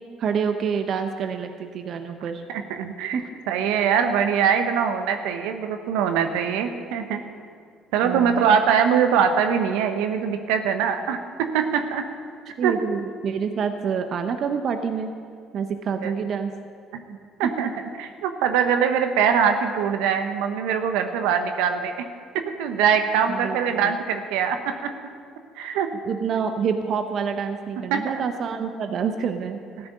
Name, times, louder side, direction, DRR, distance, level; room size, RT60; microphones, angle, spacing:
voice 1, 0.2-2.4 3.1-3.2 8.0-8.5 12.6-15.1 15.5-16.5 17.4-17.7 23.3-24.0 26.0-29.6, right 6 dB, 55° right, 7 dB, 0.7 m, -27 dB
voice 2, 2.5-3.2 3.5-7.2 7.9-12.0 12.6-12.7 16.0-16.1 16.9-17.0 17.4-17.7 18.0-22.0 22.6-24.9 25.6-25.9 27.9-28.2 29.8-29.9, right 7 dB, 80° right, 7 dB, 0.9 m, -23 dB
14.0 x 6.1 x 9.2 m, 2.2 s
supercardioid pair, 70°, 0 cm